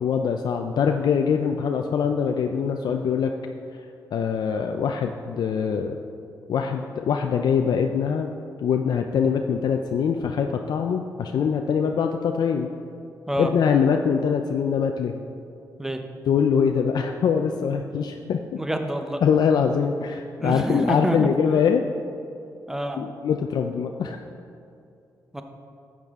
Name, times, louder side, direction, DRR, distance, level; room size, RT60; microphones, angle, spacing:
voice 1, 0.0-3.3 4.1-6.0 6.5-8.3 8.6-12.7 13.4-15.1 16.3-18.6 19.2-21.8 23.0-24.2, left 7 dB, 70° left, 4 dB, 0.4 m, -23 dB
voice 2, 18.6-19.2 20.4-21.3 22.7-23.0 25.3-25.4, right 1 dB, 5° right, 5 dB, 0.7 m, -27 dB
11.5 x 7.5 x 3.6 m, 2.6 s
cardioid pair, 115°, 7 cm